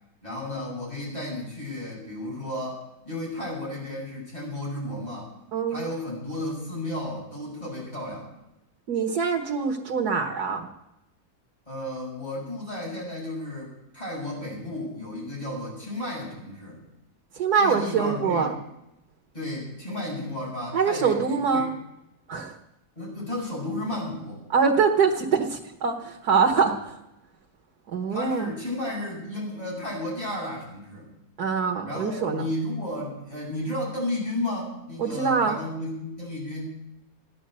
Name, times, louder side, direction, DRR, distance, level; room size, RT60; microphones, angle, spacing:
voice 1, 0.2-5.3 5.7-8.3 11.7-16.8 17.6-18.5 19.3-21.6 23.0-24.4 26.6-26.7 28.1-31.1 31.8-36.7, left 1 dB, 25° left, -5 dB, 7.9 m, -33 dB
voice 2, 5.5-5.8 8.9-10.7 17.3-18.5 20.7-21.7 22.3-22.6 24.5-27.0 27.9-28.5 31.4-32.4 35.0-35.6, right 5 dB, 90° right, 2 dB, 1.8 m, -24 dB
15.0 x 10.5 x 7.7 m, 0.87 s
omnidirectional pair, 1.6 m